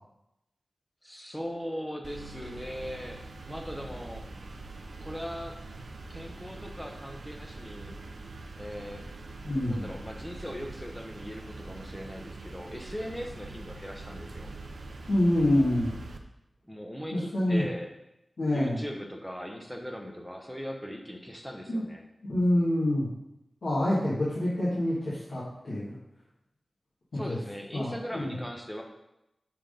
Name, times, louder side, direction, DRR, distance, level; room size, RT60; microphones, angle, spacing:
voice 1, 1.0-4.3 5.0-5.6 6.1-8.0 8.5-9.0 9.7-14.5 16.6-17.9 18.5-22.0 27.1-28.8, equal, 5° left, 1 dB, 0.9 m, -39 dB
sound 1, 2.0-16.2, right 2 dB, 70° right, 0.5 m, -43 dB
voice 2, 9.4-9.9 15.1-15.9 17.1-17.6 18.4-18.8 21.7-21.8 22.3-23.1 23.6-26.0 27.1-27.4 27.7-28.3, left 1 dB, 80° left, -9 dB, 1.7 m, -26 dB
6.0 x 3.7 x 5.1 m, 0.86 s
wide cardioid pair, 90°, 0 cm